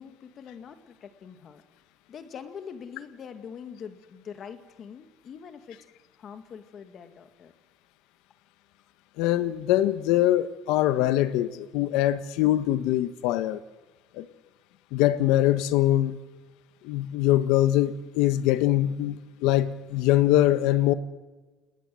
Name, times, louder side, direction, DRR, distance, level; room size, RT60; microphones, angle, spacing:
voice 1, 0.0-1.6 2.1-5.8 6.2-7.5, left 7 dB, 35° left, 2.1 m, -43 dB
voice 2, 9.2-13.6 14.2-14.3 14.9-16.2 16.8-20.9, left 13 dB, 85° left, 1.4 m, -23 dB
29.5 x 19.5 x 7.8 m
cardioid pair, 160°, 0 cm